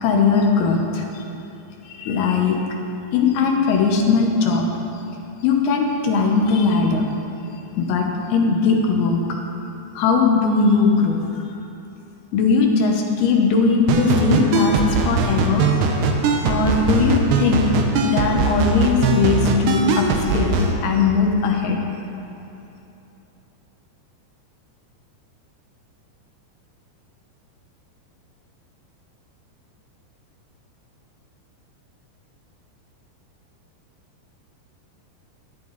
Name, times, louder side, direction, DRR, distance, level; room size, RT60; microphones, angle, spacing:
voice 1, 0.0-1.0 1.9-2.6 3.1-4.7 5.4-7.1 7.8-9.2 9.9-11.2 12.3-15.7 16.4-17.7 18.0-21.8, left 4 dB, 70° left, 1 dB, 2.7 m, -19 dB
sound 1, 13.9-20.7, right 4 dB, 80° right, 3.1 m, -20 dB
17.0 x 10.5 x 4.1 m, 2.9 s
omnidirectional pair, 5.1 m